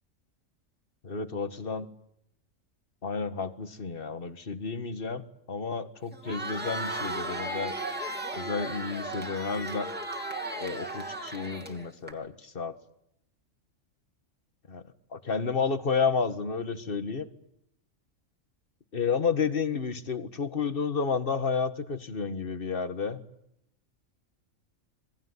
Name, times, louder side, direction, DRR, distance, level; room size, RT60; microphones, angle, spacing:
voice 1, 1.0-1.9 3.0-5.2 5.5-7.7 8.3-9.9 10.6-12.8 14.7-14.8 15.1-17.3 18.9-23.2, left 5 dB, 45° left, 11 dB, 1.8 m, -31 dB
Crowd, 6.1-12.1, right 1 dB, 5° right, 2.8 m, -35 dB
27.5 x 21.5 x 9.8 m, 0.78 s
omnidirectional pair, 1.4 m